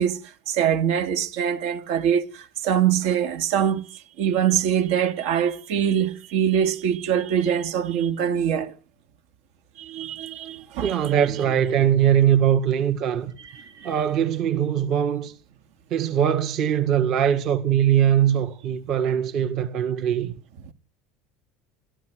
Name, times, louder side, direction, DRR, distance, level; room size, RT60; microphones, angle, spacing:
voice 1, 0.0-8.7 9.8-11.1 13.4-13.9, right 9 dB, 70° right, 2.7 m, -24 dB
voice 2, 10.8-13.3 13.8-15.3 15.9-20.3, right 9 dB, 40° right, 1.8 m, -21 dB
29.0 x 14.0 x 6.4 m
cardioid pair, 170°, 0 cm